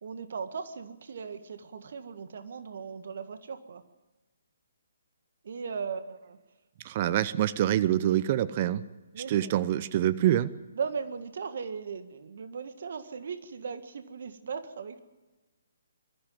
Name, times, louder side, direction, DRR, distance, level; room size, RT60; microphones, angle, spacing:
voice 1, 0.0-3.8 5.4-6.4 9.1-9.6 10.7-15.0, right 5 dB, 55° right, 9 dB, 1.8 m, -38 dB
voice 2, 6.8-8.8 9.3-10.5, right 12 dB, 35° right, 16 dB, 0.8 m, -25 dB
22.0 x 14.0 x 9.3 m, 1.2 s
figure-of-eight pair, 135°, 0 cm